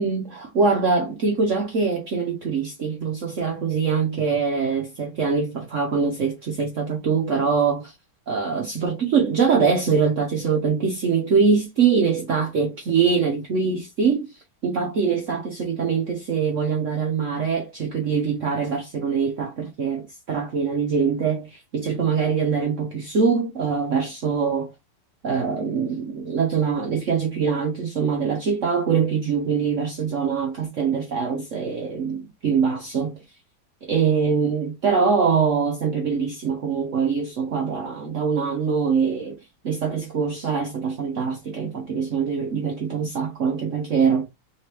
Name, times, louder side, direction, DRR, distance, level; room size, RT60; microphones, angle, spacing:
voice 1, 0.0-7.9 8.3-14.3 14.6-24.7 25.2-33.2 33.8-39.4 39.6-44.3, right 5 dB, 90° right, 0.6 m, -23 dB
4.1 x 3.3 x 2.9 m
omnidirectional pair, 2.3 m